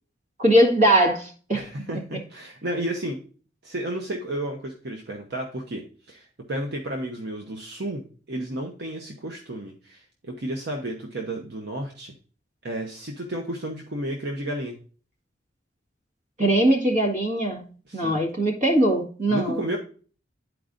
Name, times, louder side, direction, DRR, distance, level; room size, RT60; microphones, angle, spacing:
voice 1, 0.4-1.6 16.4-17.7 17.9-19.7, right 1 dB, 40° right, 0 dB, 1.7 m, -21 dB
voice 2, 1.5-3.2 3.6-12.1 12.6-14.8 17.9-18.2 19.3-19.8, right 1 dB, 60° right, 2 dB, 0.9 m, -32 dB
11.0 x 4.6 x 2.5 m, 0.40 s
head